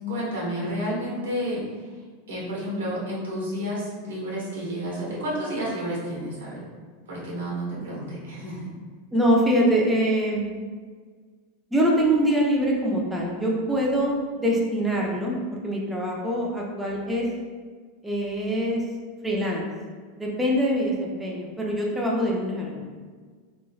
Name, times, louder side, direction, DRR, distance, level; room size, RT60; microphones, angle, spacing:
voice 1, 0.1-1.6 2.3-6.6 7.1-8.7, equal, 85° right, -4 dB, 0.9 m, -30 dB
voice 2, 9.1-10.5 11.7-15.4 15.6-17.3 18.0-18.8 19.2-19.7 20.2-22.9, equal, 5° right, -3 dB, 0.6 m, -24 dB
3.1 x 2.5 x 2.3 m, 1.5 s
hypercardioid pair, 105°, 0 cm